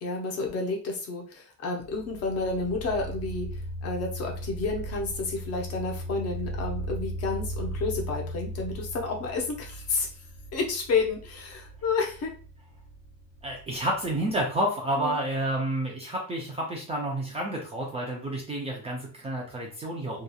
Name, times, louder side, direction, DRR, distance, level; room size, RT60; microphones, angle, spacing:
voice 1, 0.0-3.5 3.8-10.1 10.5-12.3 15.0-15.2, left 4 dB, 45° left, 1 dB, 0.7 m, -30 dB
sound 1, 1.8-14.6, right 1 dB, 85° left, 0.9 m, -37 dB
voice 2, 13.4-20.2, right 1 dB, 15° right, -2 dB, 0.4 m, -30 dB
2.8 x 2.3 x 2.3 m, 0.39 s
cardioid pair, 165°, 36 cm